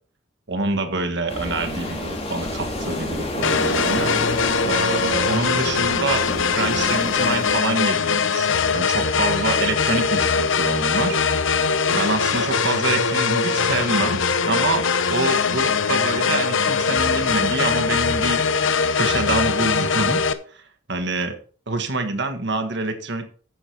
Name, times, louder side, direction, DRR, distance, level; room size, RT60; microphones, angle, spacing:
voice 1, 0.5-4.1 4.6-6.3 6.5-8.5 8.7-11.2 11.9-14.2 14.5-18.4 18.9-20.2 20.5-20.6 20.9-21.4 21.7-23.3, right 3 dB, 55° right, 7 dB, 1.5 m, -26 dB
sound 1, 1.3-7.6, left 1 dB, 30° left, 2.2 m, -30 dB
sound 2, 3.4-20.3, left 5 dB, 70° left, 0.8 m, -21 dB
9.5 x 7.6 x 4.4 m, 0.43 s
head